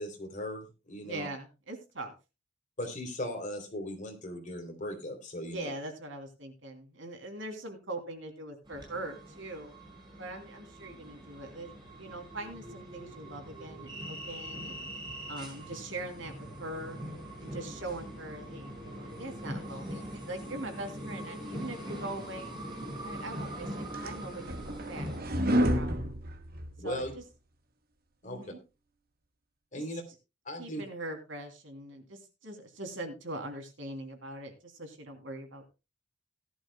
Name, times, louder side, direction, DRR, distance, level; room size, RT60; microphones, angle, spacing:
voice 1, 0.0-1.3 2.8-5.7 26.8-27.1 28.2-28.5 29.7-30.0 30.4-30.8, equal, 40° left, 3 dB, 3.2 m, -38 dB
voice 2, 1.0-2.1 5.5-9.7 10.2-14.9 15.3-17.0 17.4-22.5 23.0-25.1 25.4-26.1 26.8-27.2 28.2-28.6 30.6-35.6, right 2 dB, 90° right, 5 dB, 3.0 m, -42 dB
sound 1, 8.7-25.2, equal, 25° right, 5.7 m, -42 dB
sound 2, 23.5-27.1, equal, 55° right, 1.5 m, -30 dB
17.5 x 11.5 x 2.2 m, 0.28 s
head